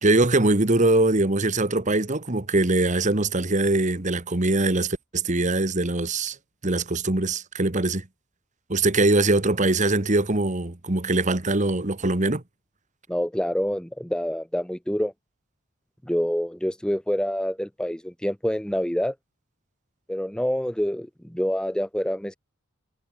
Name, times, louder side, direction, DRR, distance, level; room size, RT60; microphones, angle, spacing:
voice 1, 0.0-6.4 6.6-8.1 8.7-12.4, right 2 dB, 35° right, 1.4 m, -22 dB
voice 2, 13.1-15.1 16.1-19.1 20.1-22.3, equal, 5° left, 0.8 m, -27 dB
head